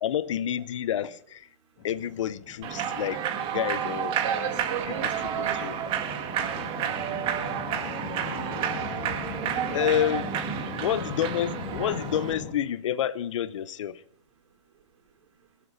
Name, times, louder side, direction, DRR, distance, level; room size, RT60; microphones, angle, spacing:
voice 1, 0.0-1.5 1.8-3.2 3.5-4.2 5.0-5.1 5.4-5.8 8.9-9.0 9.7-10.4 10.8-14.0, left 10 dB, 80° left, 0.8 m, -29 dB
sound 1, 1.8-12.5, left 6 dB, 50° left, 2.4 m, -40 dB
Human voice / Clapping / Cheering, 2.6-12.3, right 9 dB, 35° right, 1.7 m, -31 dB
voice 2, 4.2-5.6 6.3-6.6 9.4-9.9, right 7 dB, 80° right, 4.1 m, -35 dB
25.0 x 8.5 x 4.1 m
hypercardioid pair, 130°, 16 cm